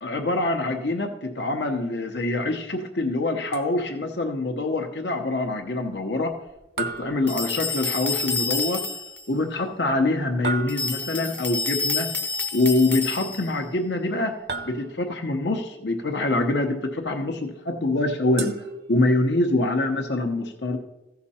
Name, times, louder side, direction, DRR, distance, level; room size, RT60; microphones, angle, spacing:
voice 1, 0.0-6.4 6.8-8.9 9.3-12.1 12.5-14.4 14.6-18.5 18.9-20.8, left 2 dB, 75° left, 3 dB, 0.9 m, -25 dB
sound 1, 3.5-4.1 6.8-8.0 10.4-11.3 14.5-15.3 18.4-19.4, right 4 dB, 60° right, 0.9 m, -35 dB
sound 2, 7.3-9.2 10.7-13.6, left 4 dB, 10° left, 0.6 m, -29 dB
15.0 x 5.9 x 4.3 m, 0.97 s
head